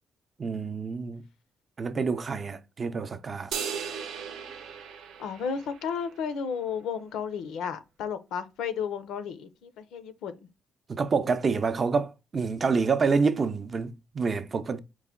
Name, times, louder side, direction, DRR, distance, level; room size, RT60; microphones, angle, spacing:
voice 1, 0.4-1.2 1.8-3.5 10.9-14.8, right 5 dB, 40° right, 0.5 m, -27 dB
sound 1, 3.5-6.1, right 7 dB, 80° right, 0.7 m, -37 dB
voice 2, 5.2-10.3, left 6 dB, 85° left, 0.5 m, -33 dB
4.6 x 2.1 x 3.6 m
cardioid pair, 90°, 0 cm